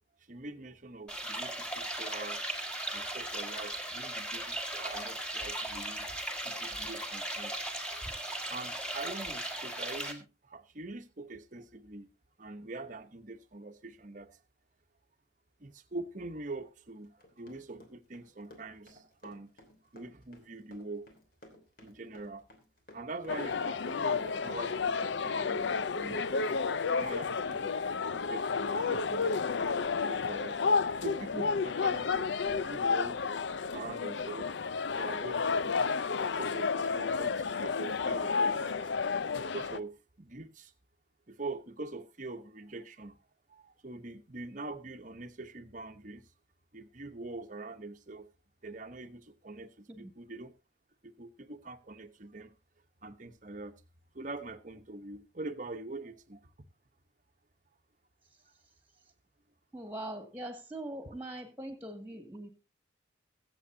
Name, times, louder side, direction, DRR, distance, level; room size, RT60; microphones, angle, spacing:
voice 1, 0.3-2.4 2.9-6.1 6.4-8.0 8.5-12.1 12.4-14.3 15.6-19.5 19.9-21.1 21.8-22.5 22.9-26.2 27.0-27.7 28.1-29.3 30.0-30.6 30.9-33.3 33.7-34.5 35.0-35.8 36.3-38.8 39.5-40.7 41.3-43.2 43.5-46.3 46.7-48.3 48.6-50.5 51.0-52.5 53.0-53.7 54.1-56.5 59.8-59.9, right 2 dB, 40° right, 1.0 m, -44 dB
sound 1, 1.1-10.1, right 1 dB, 5° left, 1.8 m, -37 dB
Run, 17.0-33.7 34.0-34.1 34.4-34.6 34.9-35.0, left 1 dB, 50° left, 3.1 m, -56 dB
sound 2, 23.3-39.8, left 5 dB, 70° left, 0.5 m, -31 dB
voice 2, 59.7-62.5, right 1 dB, 10° right, 2.1 m, -42 dB
23.5 x 7.8 x 2.7 m
head